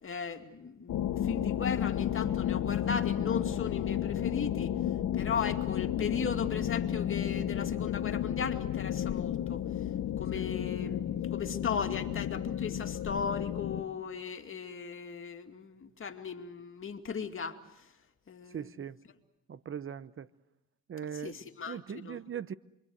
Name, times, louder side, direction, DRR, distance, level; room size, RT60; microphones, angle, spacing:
voice 1, 0.0-4.7 5.1-9.7 10.2-11.0 11.3-17.6 18.3-18.8 21.1-22.2, left 6 dB, 45° left, 2.5 m, -37 dB
sound 1, 0.9-13.8, left 10 dB, 70° left, 1.1 m, -32 dB
voice 2, 18.5-19.0 19.5-20.3 20.9-21.4 21.6-22.5, right 8 dB, 45° right, 0.9 m, -40 dB
28.0 x 23.5 x 8.1 m
cardioid pair, 90°, 30 cm